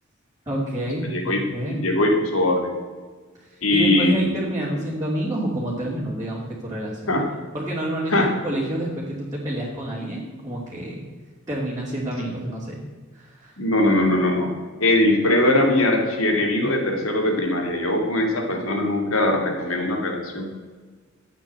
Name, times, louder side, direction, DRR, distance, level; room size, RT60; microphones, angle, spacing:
voice 1, 0.5-1.8 3.4-11.0 11.5-12.8 13.1-13.5, right 1 dB, 15° right, -6 dB, 2.7 m, -28 dB
voice 2, 1.0-1.4 1.7-2.7 3.6-4.3 7.1-7.2 8.1-8.3 13.6-14.5 14.8-20.5, left 1 dB, 75° left, 3 dB, 2.8 m, -21 dB
12.5 x 8.6 x 7.6 m, 1.5 s
head